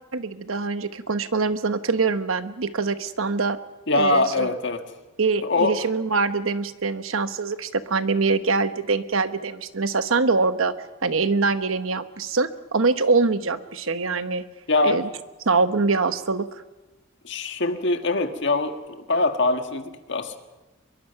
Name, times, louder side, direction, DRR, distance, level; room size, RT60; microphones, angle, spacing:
voice 1, 0.1-3.6 4.0-4.5 5.2-10.7 11.0-14.4 14.8-15.1 15.4-16.5, right 4 dB, 80° right, 11 dB, 1.1 m, -24 dB
voice 2, 3.9-4.8 5.4-5.8 14.7-15.0 17.2-20.4, left 2 dB, 60° left, 7 dB, 1.7 m, -23 dB
24.5 x 22.5 x 5.8 m, 1.1 s
head